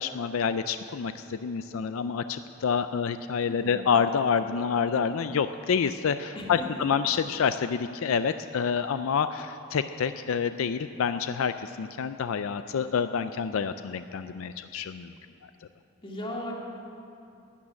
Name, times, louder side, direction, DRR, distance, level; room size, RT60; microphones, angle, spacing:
voice 1, 0.0-15.1, left 6 dB, 75° left, 11 dB, 0.4 m, -28 dB
voice 2, 3.5-3.8 6.3-6.9 16.0-16.5, left 1 dB, 25° left, -2 dB, 2.3 m, -37 dB
13.5 x 8.8 x 9.6 m, 2.6 s
head